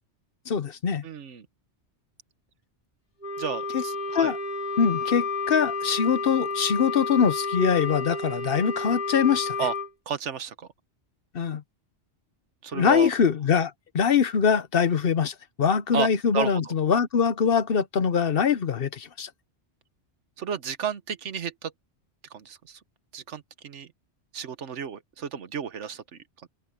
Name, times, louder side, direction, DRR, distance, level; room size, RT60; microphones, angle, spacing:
voice 1, 0.5-1.0 3.7-3.8 4.1-4.4 4.8-9.6 11.3-11.6 12.7-19.3, left 6 dB, 55° left, 1.0 m, -23 dB
voice 2, 1.0-1.5 3.4-4.3 9.6-9.7 10.1-10.7 12.6-13.1 15.9-16.1 16.3-16.7 20.4-21.7 22.3-22.8 23.1-23.9 24.3-26.5, right 7 dB, 85° right, 1.4 m, -32 dB
Wind instrument woodwind instrument, 3.2-9.9, left 4 dB, 40° left, 3.5 m, -31 dB
open air
omnidirectional pair, 1.2 m